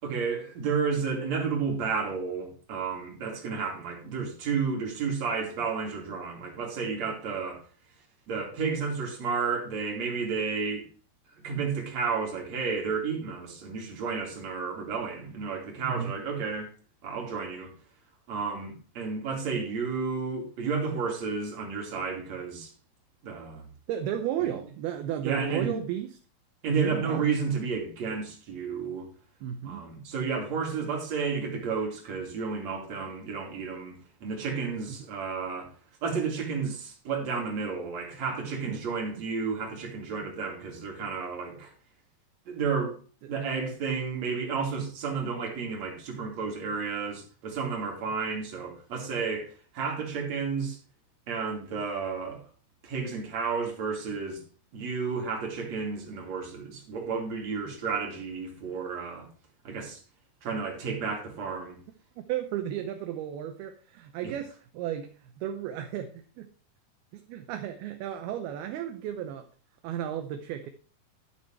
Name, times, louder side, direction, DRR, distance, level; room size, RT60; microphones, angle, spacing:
voice 1, 0.0-7.6 8.3-10.9 11.4-16.7 17.0-17.7 18.3-22.7 23.2-23.6 24.4-24.5 25.2-25.8 26.6-29.1 29.6-33.9 34.2-35.7 36.0-41.7 42.4-43.0 43.3-50.8 51.3-52.4 52.8-54.4 54.7-59.3 59.6-60.0 60.4-61.8 64.2-64.3, right 5 dB, 45° right, 3.4 m, -32 dB
voice 2, 23.9-26.2 26.7-27.2 29.4-29.8 34.9-35.0 38.7-38.8 43.2-43.3 62.3-66.5 67.1-69.5 69.8-70.7, right 10 dB, 75° right, 2.6 m, -34 dB
11.0 x 6.6 x 4.6 m
omnidirectional pair, 4.7 m